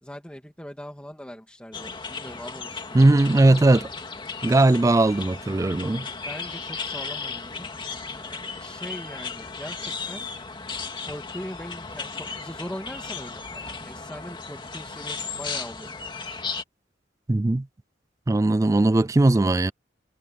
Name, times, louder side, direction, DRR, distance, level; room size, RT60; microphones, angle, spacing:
voice 1, 0.0-3.8 5.9-7.7 8.1-10.3 11.1-16.1, equal, 5° left, 2.2 m, -41 dB
sound 1, 1.7-16.6, left 4 dB, 25° left, 2.4 m, -35 dB
voice 2, 2.9-3.9 4.4-6.1 17.3-17.7 18.3-19.7, right 2 dB, 20° right, 0.4 m, -19 dB
head